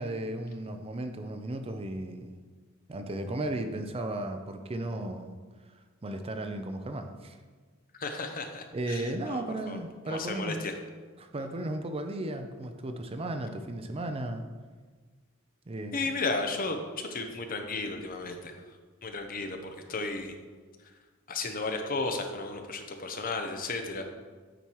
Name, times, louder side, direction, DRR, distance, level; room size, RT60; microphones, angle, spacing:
voice 1, 0.0-2.3 2.9-5.4 6.0-7.4 8.7-10.7 11.2-14.5 15.7-16.1, right 1 dB, 30° right, 6 dB, 0.5 m, -35 dB
voice 2, 8.0-9.8 10.1-10.8 15.9-18.6 19.0-20.3 21.3-24.0, left 3 dB, 45° left, 5 dB, 0.8 m, -34 dB
9.0 x 4.5 x 4.6 m, 1.4 s
head